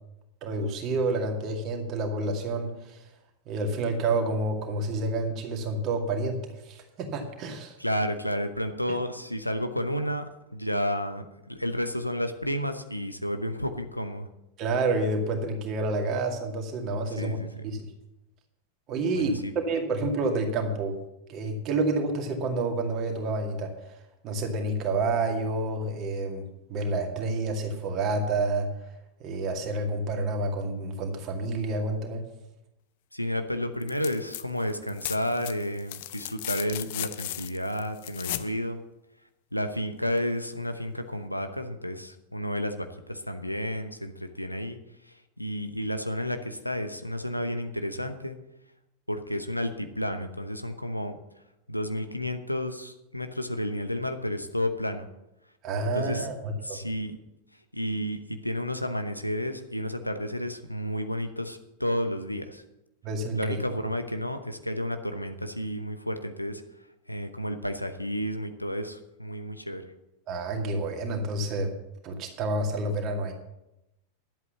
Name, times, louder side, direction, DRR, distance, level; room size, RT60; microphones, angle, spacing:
voice 1, 0.4-3.0 3.5-7.7 14.6-17.4 17.6-17.9 18.9-21.0 21.3-23.7 24.2-26.4 26.7-28.7 29.2-32.2 55.6-56.8 63.0-63.6 70.3-71.7 72.0-73.3, right 2 dB, 35° right, 3 dB, 2.2 m, -29 dB
voice 2, 7.8-14.3 17.2-17.5 19.1-19.5 33.1-38.8 39.5-44.8 45.1-48.4 49.1-51.2 51.7-55.1 55.9-56.3 56.6-57.2 57.7-62.6 63.4-66.6 67.1-69.8, equal, 90° left, 8 dB, 0.9 m, -31 dB
sound 1, 33.8-34.4 34.7-38.5 40.2-40.3, left 15 dB, 50° left, 0.5 m, -36 dB
11.0 x 8.2 x 6.9 m, 0.91 s
figure-of-eight pair, 90°, 0 cm